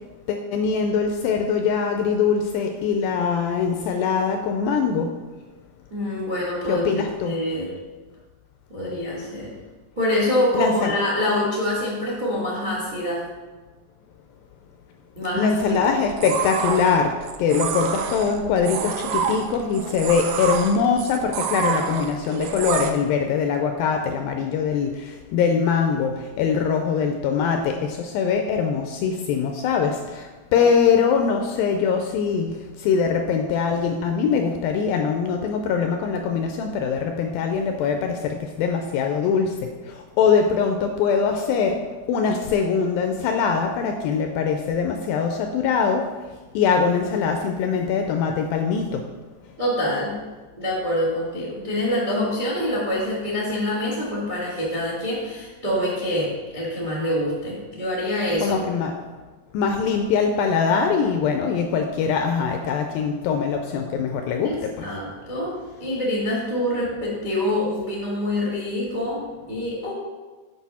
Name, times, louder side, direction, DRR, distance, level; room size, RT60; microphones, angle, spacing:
voice 1, 0.3-5.1 6.7-7.4 10.5-10.9 15.4-17.1 17.4-39.6 39.9-41.8 42.1-46.0 46.6-49.0 58.4-58.9 59.5-64.9, left 6 dB, 80° left, 4 dB, 2.1 m, -22 dB
voice 2, 5.9-7.7 8.7-9.5 9.9-13.2 15.2-15.8 30.5-30.7 49.6-50.1 50.5-58.6 64.4-65.5 65.8-69.2 69.5-69.9, left 1 dB, 40° right, -5 dB, 0.6 m, -25 dB
sound 1, 15.7-22.9, right 7 dB, 85° right, 1.9 m, -28 dB
8.2 x 6.0 x 4.2 m, 1.3 s
omnidirectional pair, 4.6 m